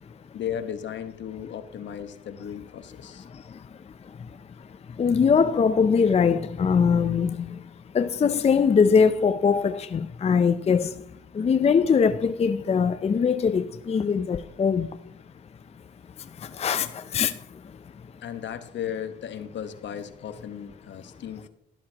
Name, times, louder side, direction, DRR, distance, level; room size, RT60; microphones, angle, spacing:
voice 1, 0.3-3.2 18.2-21.5, left 9 dB, 65° left, 1.3 m, -35 dB
voice 2, 3.3-11.0 11.3-15.0 16.2-17.8, left 6 dB, 30° left, 0.5 m, -23 dB
13.0 x 12.5 x 2.9 m
cardioid pair, 90°, 20 cm